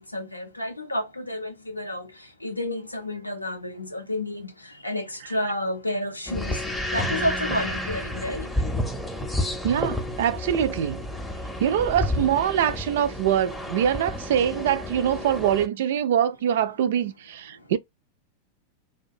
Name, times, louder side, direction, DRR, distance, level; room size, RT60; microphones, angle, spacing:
voice 1, 0.0-2.0 2.4-4.5 4.8-5.1 5.3-6.6 6.9-8.5, left 1 dB, 85° left, 0.5 m, -30 dB
sound 1, 6.3-15.7, left 1 dB, 5° left, 0.6 m, -30 dB
voice 2, 9.6-11.0 11.6-17.8, right 9 dB, 55° right, 0.3 m, -24 dB
2.5 x 2.2 x 2.5 m
figure-of-eight pair, 90°, 0 cm